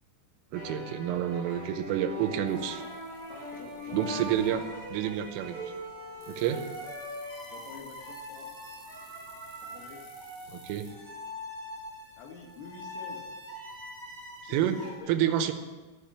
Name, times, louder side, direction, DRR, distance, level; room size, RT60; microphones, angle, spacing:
sound 1, 0.5-15.0, equal, 30° right, 2.4 m, -42 dB
voice 1, 0.5-2.8 3.9-4.6 4.9-5.6 6.3-6.7 10.5-10.9 14.4-14.8 15.1-15.5, right 10 dB, 90° right, 8 dB, 3.5 m, -29 dB
sound 2, 1.3-11.3, left 2 dB, 35° left, 5.4 m, -54 dB
sound 3, 2.5-4.5 6.2-10.9 11.8-13.6, left 1 dB, 10° left, 3.2 m, -57 dB
voice 2, 3.3-4.7 7.5-8.5 9.6-10.0 12.2-13.3 14.4-15.2, left 5 dB, 80° left, 1 dB, 4.3 m, -47 dB
13.5 x 7.4 x 8.8 m, 1.3 s
omnidirectional pair, 5.7 m